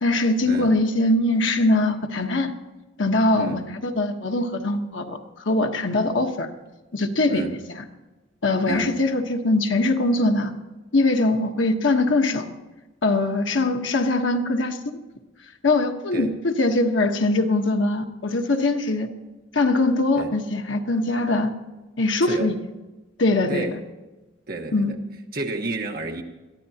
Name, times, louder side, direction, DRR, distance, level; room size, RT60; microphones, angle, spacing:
voice 1, 0.0-2.5 3.0-5.2 5.4-6.5 6.9-7.5 8.4-10.5 10.9-12.5 13.0-15.0 15.6-19.1 19.5-21.5 22.0-22.5 23.2-23.7 24.7-24.9, left 2 dB, 70° left, 5 dB, 1.2 m, -22 dB
voice 2, 7.3-7.6 8.7-8.9 16.1-16.3 20.2-20.3 22.2-22.5 23.5-23.8 24.5-25.0 25.3-26.2, right 2 dB, 50° right, 3 dB, 1.3 m, -30 dB
22.0 x 14.5 x 2.9 m, 1.1 s
head